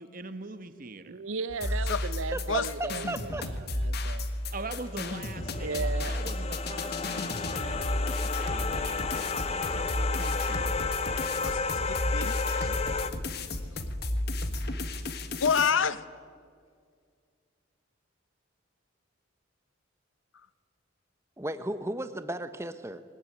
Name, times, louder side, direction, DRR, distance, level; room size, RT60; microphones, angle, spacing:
voice 1, 0.0-1.2 4.5-7.9 8.2-10.8 12.4-12.7, right 3 dB, 40° right, 1.2 m, -43 dB
voice 2, 1.1-4.4 5.6-6.2, right 4 dB, 80° right, 0.6 m, -36 dB
sound 1, 1.5-15.7, left 1 dB, 50° left, 1.5 m, -33 dB
voice 3, 2.3-3.5 21.4-23.0, right 1 dB, 15° right, 0.9 m, -35 dB
sound 2, 4.7-13.1, left 4 dB, 30° left, 0.8 m, -33 dB
voice 4, 11.3-13.5 15.4-16.0, left 6 dB, 70° left, 0.8 m, -29 dB
20.5 x 19.5 x 9.4 m
head